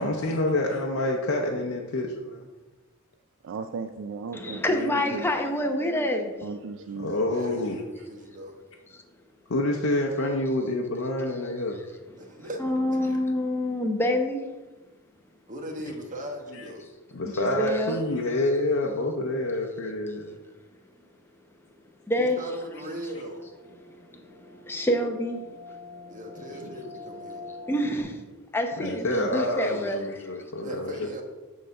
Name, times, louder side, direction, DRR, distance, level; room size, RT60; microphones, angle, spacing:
voice 1, 0.0-2.5 7.0-7.8 9.5-11.8 16.5-16.7 17.1-20.4 28.8-31.1, left 1 dB, 65° left, 0 dB, 0.7 m, -27 dB
voice 2, 3.4-5.2 6.4-7.2, right 5 dB, 60° right, 8 dB, 0.3 m, -36 dB
voice 3, 4.3-6.3 8.9-9.0 12.2-14.4 17.2-18.0 22.1-22.4 23.8-25.4 27.7-28.2 28.5-30.4, left 1 dB, 10° left, 3 dB, 0.8 m, -27 dB
voice 4, 7.0-8.6 12.2-12.6 15.5-16.9 22.2-23.5 26.1-27.4 30.6-31.2, equal, 35° right, 2 dB, 1.2 m, -38 dB
sound 1, 22.8-28.0, left 2 dB, 75° right, 1.6 m, -45 dB
6.6 x 3.9 x 6.3 m, 1.2 s
head